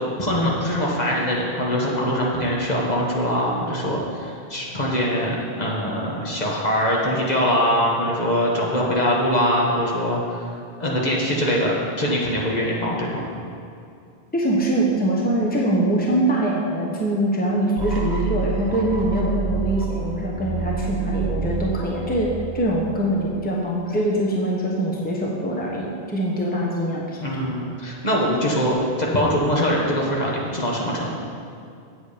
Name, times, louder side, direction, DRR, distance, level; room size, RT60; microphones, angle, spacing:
voice 1, 0.2-10.2 10.8-13.3 27.2-31.1, equal, 45° left, -4 dB, 1.5 m, -22 dB
voice 2, 14.3-27.5, right 1 dB, 10° left, -3 dB, 1.1 m, -23 dB
sound 1, 17.8-23.7, right 6 dB, 50° right, 1.0 m, -29 dB
8.2 x 8.2 x 5.1 m, 2.5 s
omnidirectional pair, 1.0 m